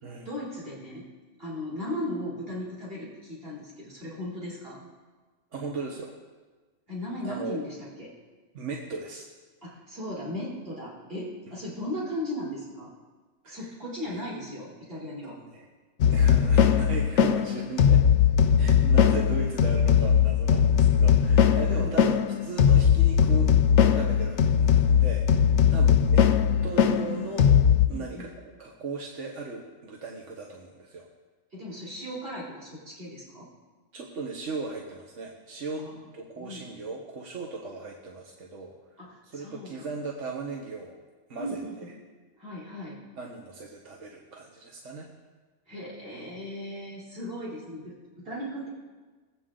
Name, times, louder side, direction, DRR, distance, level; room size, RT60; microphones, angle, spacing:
voice 1, 0.2-1.1 1.4-4.8 6.9-8.1 9.6-12.9 13.5-15.4 21.7-21.9 25.6-25.8 27.9-28.3 31.5-33.5 35.8-36.0 36.4-36.6 39.0-39.9 41.4-41.8 42.4-43.0 45.7-48.7, left 1 dB, 50° right, -7 dB, 3.9 m, -37 dB
voice 2, 5.5-6.1 7.2-7.6 8.5-9.3 13.4-13.7 14.0-14.2 15.0-15.7 16.1-18.0 18.6-26.3 26.6-27.5 27.9-28.3 28.6-31.1 33.9-35.9 36.1-38.7 39.2-40.9 41.3-41.9 43.2-45.1, right 3 dB, 75° right, 0 dB, 1.4 m, -37 dB
sound 1, 16.0-27.9, left 8 dB, 70° left, 0.9 m, -20 dB
21.0 x 8.3 x 3.8 m, 1.3 s
omnidirectional pair, 1.3 m